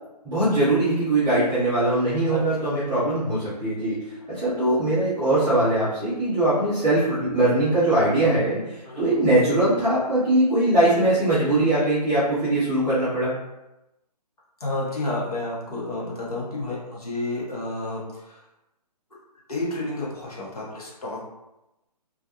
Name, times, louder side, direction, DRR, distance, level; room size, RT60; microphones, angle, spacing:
voice 1, 0.2-8.6 9.0-13.4, right 1 dB, 5° right, -16 dB, 0.3 m, -21 dB
voice 2, 14.6-18.4 19.5-21.2, left 2 dB, 60° left, -4 dB, 0.9 m, -30 dB
2.4 x 2.1 x 2.8 m, 0.93 s
figure-of-eight pair, 140°, 21 cm